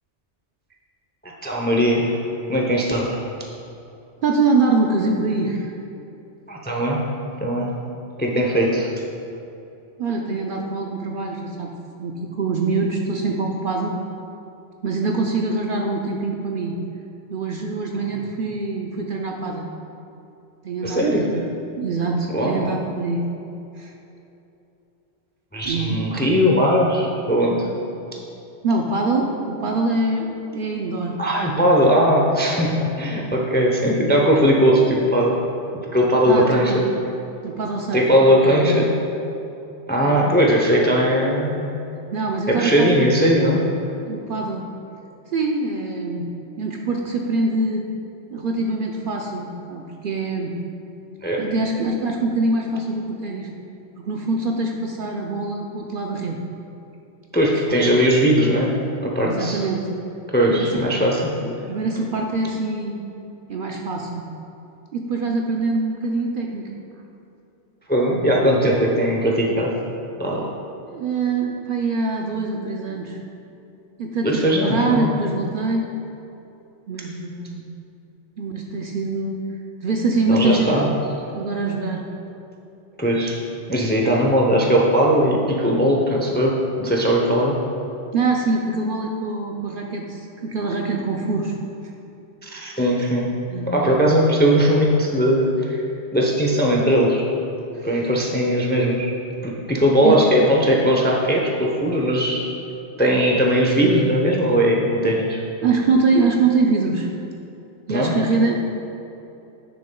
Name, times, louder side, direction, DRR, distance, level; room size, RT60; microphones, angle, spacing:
voice 1, 1.2-2.2 2.5-3.2 6.5-7.0 7.4-7.7 8.2-8.9 20.8-21.3 22.3-22.7 25.5-27.7 31.2-35.4 35.9-36.7 37.9-38.9 39.9-41.7 42.5-43.6 51.2-51.5 57.3-58.7 59.0-59.6 60.3-61.2 67.9-69.7 70.2-70.5 74.2-75.1 80.3-80.9 83.0-83.4 83.7-87.6 92.4-93.3 93.7-95.8 96.1-97.3 97.8-99.1 99.4-102.5 103.0-105.4 107.9-108.1, equal, 10° left, -1 dB, 0.5 m, -19 dB
voice 2, 4.2-5.7 10.0-11.7 12.0-13.9 14.8-16.8 17.3-19.7 20.6-21.5 21.8-23.3 23.8-23.9 25.7-26.1 28.6-31.2 36.3-36.8 37.4-38.9 40.0-40.2 42.1-43.1 44.1-44.6 45.3-47.9 48.3-50.5 51.4-53.5 54.0-56.4 57.7-57.8 59.3-59.9 60.5-60.9 61.4-63.0 63.5-64.2 64.9-66.8 68.0-68.4 70.9-73.2 74.0-75.9 76.9-77.6 78.4-79.4 79.8-80.7 81.3-82.1 88.1-91.6 93.5-94.0 97.7-98.1 100.0-100.2 105.6-107.1 107.9-108.6, right 3 dB, 55° right, 0 dB, 0.6 m, -24 dB
10.5 x 6.7 x 2.3 m, 2.8 s
omnidirectional pair, 1.2 m